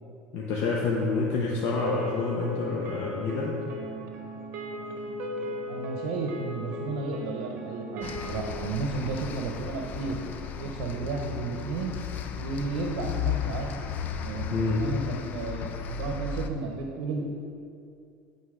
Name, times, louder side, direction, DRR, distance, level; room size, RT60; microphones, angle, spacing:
voice 1, 0.3-3.6 14.5-14.8, left 3 dB, 60° left, -4 dB, 1.0 m, -28 dB
sound 1, 1.7-8.4, left 1 dB, 50° right, 1.0 m, -37 dB
voice 2, 5.7-10.2 10.6-11.9 12.4-13.7 14.2-17.3, right 4 dB, 80° right, 1 dB, 0.8 m, -33 dB
sound 2, 8.0-16.5, left 8 dB, 45° left, 0.4 m, -35 dB
9.7 x 3.9 x 4.9 m, 2.4 s
supercardioid pair, 130°, 4 cm